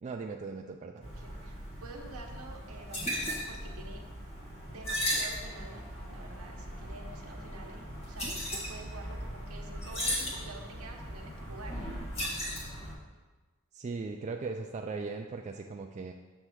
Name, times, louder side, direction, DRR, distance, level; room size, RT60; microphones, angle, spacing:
voice 1, 0.0-1.1 13.7-16.1, right 4 dB, 30° right, 3 dB, 0.3 m, -38 dB
sound 1, 1.0-12.9, equal, 30° left, 1.5 m, -37 dB
voice 2, 1.1-4.0 4.7-5.8 6.1-11.8, right 2 dB, 70° right, 2 dB, 0.9 m, -48 dB
7.2 x 3.3 x 6.2 m, 1.3 s
head